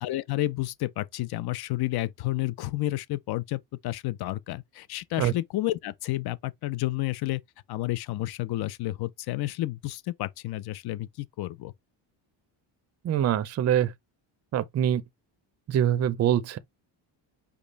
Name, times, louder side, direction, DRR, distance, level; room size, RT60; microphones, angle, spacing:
voice 1, 0.0-7.4 7.7-11.7, left 16 dB, 55° left, 0.5 m, -31 dB
voice 2, 13.0-13.9 14.5-15.0 15.7-16.6, right 10 dB, 35° right, 0.5 m, -24 dB
5.2 x 2.3 x 3.9 m
cardioid pair, 120°, 48 cm